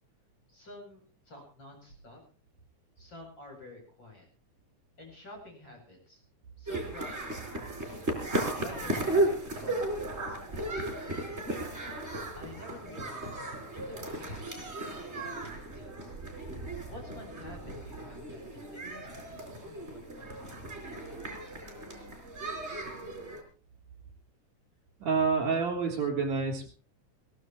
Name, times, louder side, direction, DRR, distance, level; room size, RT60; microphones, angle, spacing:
voice 1, 0.5-2.2 3.0-4.3 5.0-6.2 6.6-8.0 8.6-11.6 12.3-16.1 16.5-18.4 18.7-21.6, left 1 dB, 35° left, 1 dB, 8.6 m, -50 dB
sound 1, 6.7-23.4, right 2 dB, 20° right, 4.5 m, -35 dB
voice 2, 25.0-26.7, right 5 dB, 60° right, 2 dB, 4.8 m, -28 dB
22.0 x 16.5 x 3.2 m, 0.37 s
omnidirectional pair, 3.6 m